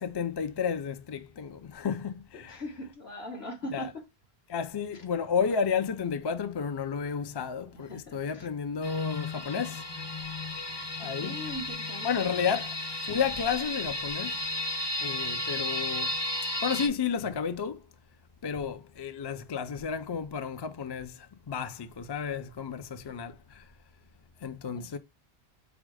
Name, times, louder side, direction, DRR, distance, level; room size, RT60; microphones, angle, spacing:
voice 1, 0.0-2.6 3.7-3.9 4.5-9.8 11.0-11.4 12.0-12.8 13.1-14.4 15.0-16.2 16.6-17.8 18.4-23.7 24.4-25.0, left 6 dB, 45° left, 0.3 m, -32 dB
voice 2, 2.5-4.0 7.7-8.5 11.0-12.5 23.0-23.1 24.8-25.0, left 1 dB, 70° left, 1.8 m, -41 dB
sound 1, 8.8-16.9, left 2 dB, 30° left, 0.7 m, -34 dB
5.0 x 2.0 x 4.7 m
omnidirectional pair, 1.1 m